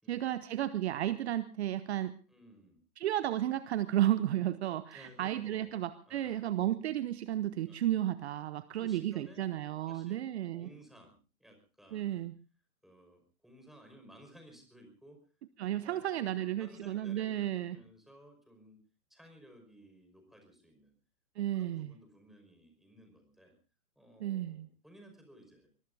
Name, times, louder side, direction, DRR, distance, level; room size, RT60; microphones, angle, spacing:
voice 1, 0.1-2.2 3.0-10.7 11.9-12.3 15.6-17.8 21.4-21.9 24.2-24.7, right 12 dB, 45° right, 15 dB, 0.9 m, -33 dB
voice 2, 2.3-2.8 4.9-6.4 7.7-7.8 8.7-9.5 9.9-10.3 10.5-12.3 12.8-15.2 15.6-18.8 19.1-20.9 21.4-23.5 24.0-25.7, equal, ahead, 4 dB, 5.4 m, -57 dB
24.0 x 22.0 x 2.7 m, 0.36 s
hypercardioid pair, 130°, 45 cm